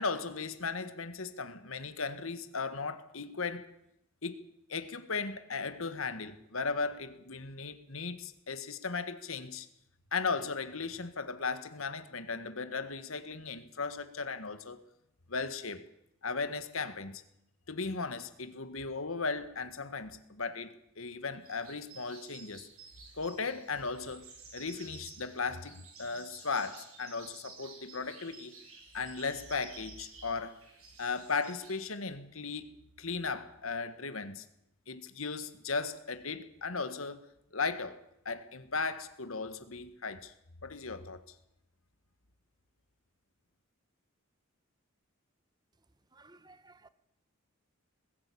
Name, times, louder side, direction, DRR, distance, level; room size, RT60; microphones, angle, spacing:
voice 1, 0.0-3.7 4.2-4.4 4.7-9.7 10.1-14.8 15.3-15.8 16.2-17.2 17.7-22.7 23.2-24.3 24.5-28.6 28.9-30.6 31.0-34.4 34.9-37.2 37.5-40.3 40.6-41.2, left 4 dB, 75° left, 1.7 m, -36 dB
sound 1, 21.4-31.8, right 4 dB, 85° right, 6.7 m, -53 dB
voice 2, 46.1-46.9, right 3 dB, 20° right, 1.1 m, -57 dB
20.5 x 16.0 x 8.6 m
head